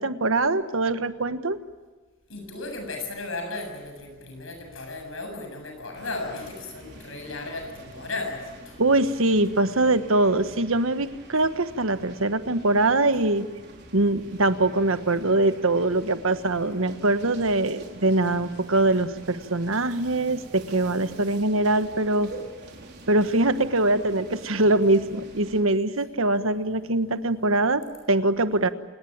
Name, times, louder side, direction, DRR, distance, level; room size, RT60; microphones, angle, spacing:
voice 1, 0.0-1.6 8.8-13.5 13.9-22.3 23.1-28.7, right 2 dB, 75° right, 11 dB, 1.4 m, -23 dB
voice 2, 2.3-8.7, left 2 dB, 70° left, 5 dB, 7.5 m, -35 dB
sound 1, 5.9-25.6, right 2 dB, 55° right, 4.5 m, -46 dB
28.0 x 19.0 x 8.8 m, 1.3 s
head